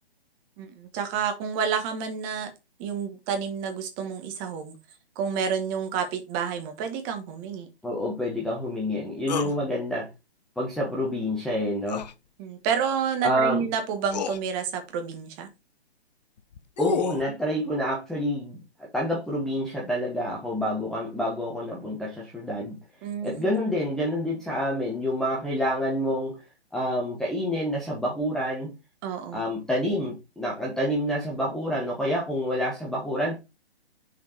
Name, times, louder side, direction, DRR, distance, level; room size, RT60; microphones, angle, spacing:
voice 1, 0.6-2.5 2.8-4.7 5.1-7.7 12.4-15.5 23.0-23.7 29.0-29.5, right 7 dB, 20° right, 1.4 m, -29 dB
voice 2, 7.8-10.1 10.6-12.1 13.2-13.6 16.8-18.6 18.9-22.8 23.2-26.4 26.7-28.7 29.3-33.4, equal, ahead, 0.9 m, -28 dB
sound 1, 9.3-9.6 11.9-12.1 13.5-13.6 14.1-14.4 16.4-17.2, left 8 dB, 40° left, 0.6 m, -30 dB
6.3 x 4.3 x 4.2 m
hypercardioid pair, 150°, 32 cm